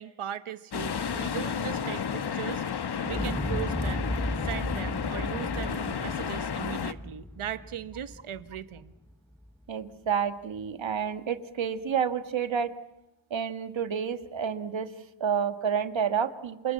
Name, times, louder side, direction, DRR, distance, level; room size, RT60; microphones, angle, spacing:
voice 1, 0.0-4.1 4.4-8.9, right 10 dB, 85° right, 13 dB, 1.2 m, -38 dB
sound 1, 0.7-6.9, left 7 dB, 55° left, 1.2 m, -32 dB
Explosion, 3.1-9.1 9.4-9.5, left 1 dB, 5° left, 0.9 m, -35 dB
voice 2, 9.7-12.7 13.3-14.9 15.2-16.7, right 7 dB, 65° right, 10 dB, 1.7 m, -29 dB
27.5 x 21.0 x 8.4 m, 0.92 s
cardioid pair, 75°, 49 cm